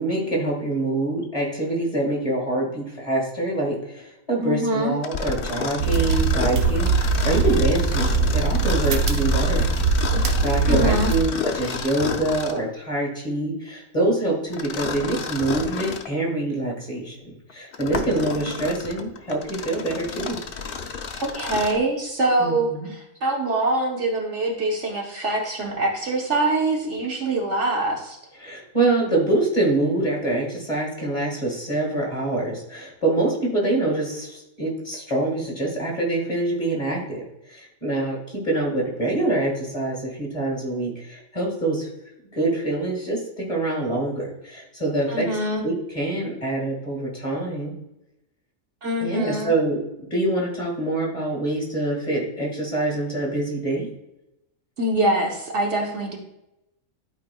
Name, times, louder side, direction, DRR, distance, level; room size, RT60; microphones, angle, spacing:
voice 1, 0.0-9.7 10.4-20.4 22.4-22.9 28.4-41.9 42.3-45.3 45.6-47.8 49.0-53.9, right 2 dB, 25° left, -1 dB, 2.0 m, -25 dB
voice 2, 4.4-5.0 10.7-11.1 21.2-28.2 45.1-45.6 48.8-49.5 54.8-56.2, right 1 dB, 60° right, 0 dB, 1.3 m, -24 dB
Mechanisms, 5.0-12.7 14.5-16.1 16.7-16.8 17.5-21.9, left 5 dB, 55° left, 0.7 m, -31 dB
sound 1, 5.8-11.2, right 4 dB, 80° right, 1.1 m, -21 dB
11.5 x 4.7 x 2.3 m, 0.88 s
omnidirectional pair, 1.4 m